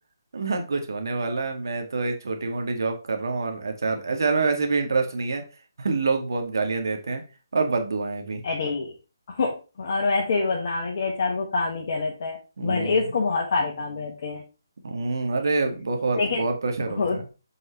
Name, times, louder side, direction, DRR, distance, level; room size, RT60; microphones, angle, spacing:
voice 1, 0.3-5.4 5.8-7.2 7.5-8.4 12.6-13.0 14.8-17.2, right 3 dB, 65° right, 4 dB, 1.9 m, -26 dB
voice 2, 8.4-9.0 9.3-14.4 16.1-16.4 17.0-17.2, left 4 dB, 50° left, -2 dB, 1.8 m, -26 dB
8.4 x 5.3 x 3.2 m, 0.33 s
figure-of-eight pair, 150°, 2 cm